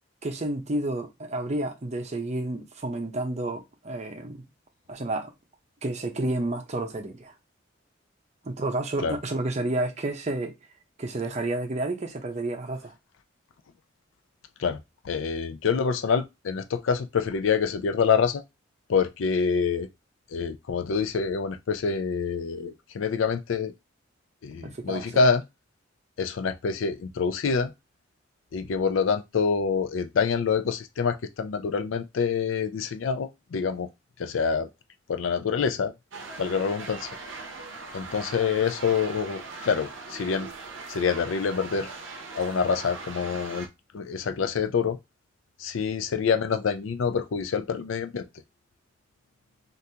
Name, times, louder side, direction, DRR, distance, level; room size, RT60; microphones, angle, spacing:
voice 1, 0.2-4.5 4.9-5.3 5.8-7.3 8.4-10.5 11.0-12.9 24.6-25.1, right 2 dB, 35° right, 0.6 m, -30 dB
voice 2, 14.6-18.4 18.9-19.9 20.3-23.7 24.4-25.4 26.2-27.7 28.5-33.9 34.2-34.7 35.1-35.9 36.4-37.1 37.9-40.5 40.9-41.9 42.4-43.7 43.9-45.0 45.6-48.3, left 5 dB, 80° left, 0.4 m, -26 dB
sound 1, 36.1-43.7, right 3 dB, 75° right, 0.6 m, -40 dB
3.4 x 2.6 x 2.7 m
head